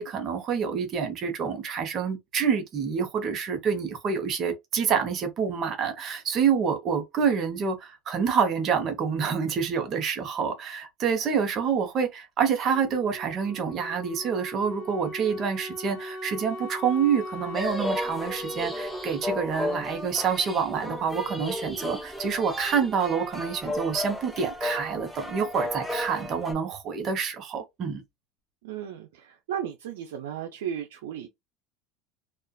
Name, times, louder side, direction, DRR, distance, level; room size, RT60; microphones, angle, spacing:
voice 1, 0.0-28.0, right 6 dB, 45° right, 0.8 m, -27 dB
Wind instrument woodwind instrument, 12.6-21.3, equal, 45° left, 1.3 m, -40 dB
sound 1, 17.5-26.5, left 1 dB, ahead, 0.5 m, -34 dB
voice 2, 28.6-31.3, right 9 dB, 85° right, 0.4 m, -35 dB
2.4 x 2.3 x 2.2 m
supercardioid pair, 100°, 0 cm